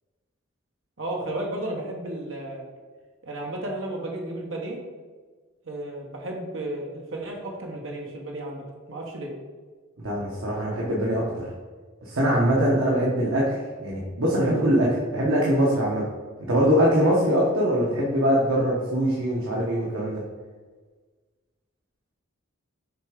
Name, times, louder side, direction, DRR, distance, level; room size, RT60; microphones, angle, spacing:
voice 1, 1.0-2.6 3.2-4.8 5.6-9.3, right 1 dB, 70° right, 0 dB, 1.2 m, -33 dB
voice 2, 10.0-11.5 12.0-13.5 13.8-16.0 16.5-20.2, equal, 90° right, -5 dB, 1.2 m, -22 dB
6.6 x 3.5 x 5.1 m, 1.4 s
head